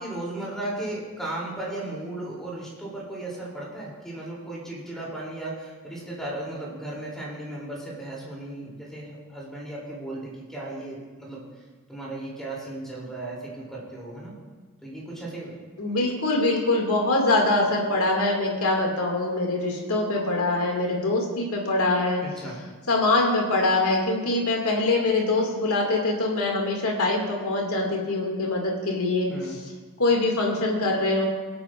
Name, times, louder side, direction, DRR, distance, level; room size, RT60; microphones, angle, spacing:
voice 1, 0.0-11.4 11.9-14.3 14.8-15.5 22.2-22.6 29.3-29.5, right 1 dB, ahead, -5 dB, 3.2 m, -35 dB
voice 2, 15.8-22.2 22.9-29.3 30.0-31.3, left 2 dB, 70° left, 0 dB, 2.3 m, -23 dB
25.5 x 8.6 x 2.6 m, 1.4 s
head